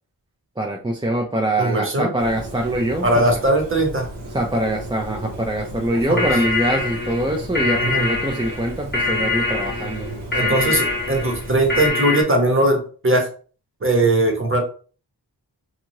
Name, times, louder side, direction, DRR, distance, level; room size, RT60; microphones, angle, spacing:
voice 1, 0.6-3.2 4.3-10.1 10.4-10.7, right 1 dB, 10° right, 0 dB, 0.4 m, -24 dB
voice 2, 1.6-2.1 3.0-4.1 6.1-6.3 7.8-8.1 10.3-13.3 13.8-14.6, right 1 dB, 30° right, 2 dB, 1.0 m, -19 dB
Bird, 2.2-11.9, right 1 dB, 75° right, 1.1 m, -34 dB
sound 1, 5.9-12.2, left 3 dB, 25° left, 0.8 m, -24 dB
2.7 x 2.4 x 3.0 m, 0.39 s
wide cardioid pair, 75°, 42 cm